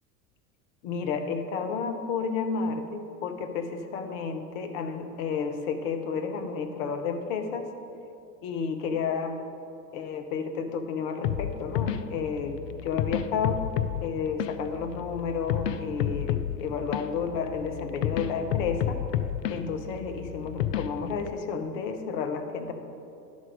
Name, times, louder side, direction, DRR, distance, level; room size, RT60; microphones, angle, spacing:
voice 1, 0.8-7.7 8.4-9.4 9.9-13.6 14.0-19.0 19.5-22.7, left 5 dB, 55° left, 6 dB, 0.9 m, -31 dB
sound 1, 11.2-21.3, left 10 dB, 80° left, 0.5 m, -31 dB
11.5 x 5.3 x 5.1 m, 2.6 s
figure-of-eight pair, 75°, 48 cm